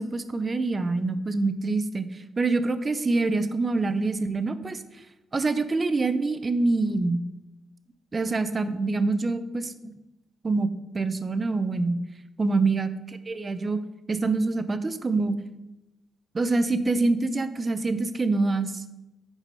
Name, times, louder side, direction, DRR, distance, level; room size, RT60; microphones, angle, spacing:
voice 1, 0.0-2.1 2.4-4.8 5.3-7.2 8.1-9.7 10.4-10.7 10.9-12.0 12.4-12.9 13.3-13.8 14.1-15.3 16.3-19.0, right 3 dB, 30° right, 11 dB, 0.6 m, -25 dB
9.2 x 4.8 x 5.4 m, 0.98 s
cardioid pair, 120°, 0 cm